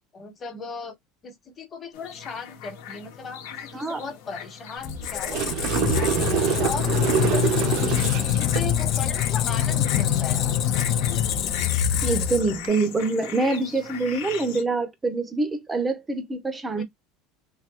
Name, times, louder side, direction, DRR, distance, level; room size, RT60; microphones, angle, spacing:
voice 1, 0.1-1.0 1.2-6.9 7.2-10.6 10.9-11.4 16.7-16.8, left 4 dB, 25° left, 1.2 m, -38 dB
sound 1, 1.9-14.6, left 8 dB, 75° left, 1.0 m, -41 dB
Squeak, 4.8-12.7, left 9 dB, 45° left, 0.5 m, -24 dB
sound 2, 5.0-8.7 12.5-12.7, right 10 dB, 55° right, 0.5 m, -26 dB
voice 2, 12.0-16.8, right 3 dB, 15° right, 0.6 m, -25 dB
3.2 x 2.3 x 2.9 m
cardioid pair, 145°, 0 cm